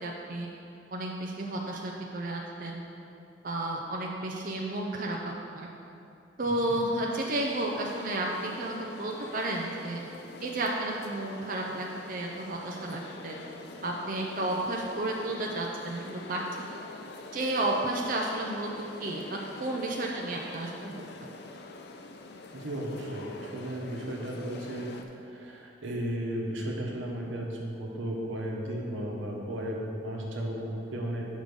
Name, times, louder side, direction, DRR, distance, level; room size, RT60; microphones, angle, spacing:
voice 1, 0.0-0.5 0.9-2.8 3.4-5.7 6.4-10.0 10.4-13.4 13.8-16.4 17.3-18.7 19.0-21.3, right 1 dB, 45° right, -1 dB, 0.5 m, -32 dB
sound 1, 7.1-25.0, left 3 dB, 60° left, 0.5 m, -45 dB
voice 2, 22.5-24.9 25.2-31.3, right 1 dB, 90° right, -1 dB, 1.1 m, -35 dB
6.4 x 5.1 x 5.3 m, 2.7 s
head